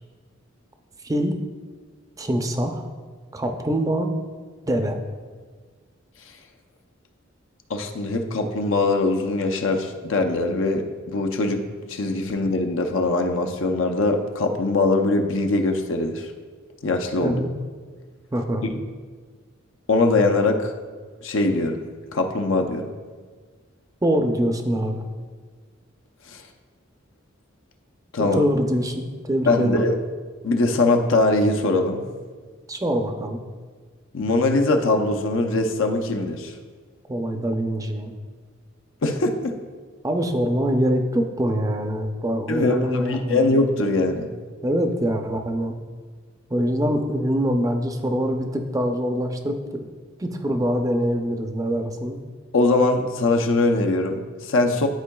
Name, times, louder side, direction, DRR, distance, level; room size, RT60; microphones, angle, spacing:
voice 1, 1.0-1.4 2.2-2.8 3.3-4.1 4.7-5.0 17.2-17.5 18.3-18.7 24.0-25.0 28.2-29.8 32.7-33.4 37.1-38.1 40.0-43.5 44.6-45.8 46.5-49.9 50.2-52.2, equal, 15° right, 5 dB, 0.5 m, -24 dB
voice 2, 7.7-11.6 11.9-16.3 16.8-17.4 19.9-20.7 21.2-21.8 22.1-22.9 26.3-26.4 28.1-28.4 29.4-30.0 30.4-32.0 34.1-36.6 39.0-39.6 42.5-44.3 52.5-54.9, left 2 dB, 75° left, 5 dB, 0.6 m, -22 dB
11.5 x 4.6 x 2.3 m, 1.5 s
head